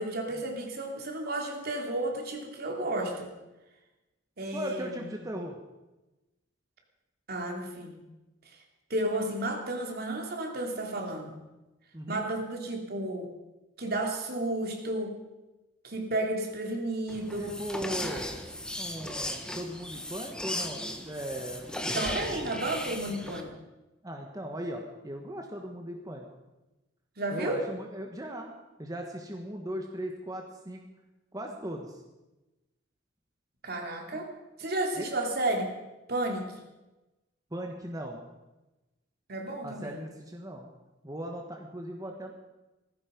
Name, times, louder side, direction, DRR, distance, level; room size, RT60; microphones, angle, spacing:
voice 1, 0.0-3.3 4.4-5.1 7.3-8.0 8.9-11.4 12.1-13.3 13.8-15.2 15.8-17.6 21.9-23.5 27.2-27.7 33.6-34.3 34.6-35.7 36.1-36.5 39.3-40.1, right 1 dB, 55° right, 2 dB, 3.0 m, -32 dB
voice 2, 4.5-5.6 11.9-12.3 17.4-18.3 18.8-22.4 24.0-26.3 27.3-28.5 28.8-30.8 31.3-32.0 34.1-34.2 35.0-35.1 37.5-38.2 39.6-40.7 41.0-42.3, right 1 dB, 20° right, 1 dB, 1.5 m, -38 dB
sound 1, 17.1-23.4, left 1 dB, 5° left, 1.4 m, -36 dB
17.5 x 15.5 x 5.3 m, 1.0 s
head